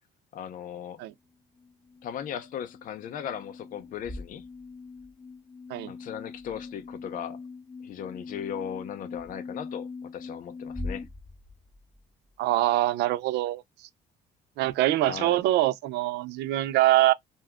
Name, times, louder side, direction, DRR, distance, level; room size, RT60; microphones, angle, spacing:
voice 1, 0.3-1.0 2.0-4.4 5.9-7.4 7.8-11.1 15.1-15.4, left 9 dB, 55° left, 0.6 m, -37 dB
sound 1, 1.6-11.0, left 4 dB, 30° left, 1.3 m, -43 dB
sound 2, 3.7-5.2 6.3-7.0 9.1-9.3 10.6-12.6, left 2 dB, 5° left, 0.5 m, -42 dB
voice 2, 12.4-13.6 14.6-17.1, right 15 dB, 80° right, 0.4 m, -24 dB
2.7 x 2.3 x 3.4 m
cardioid pair, 110°, 17 cm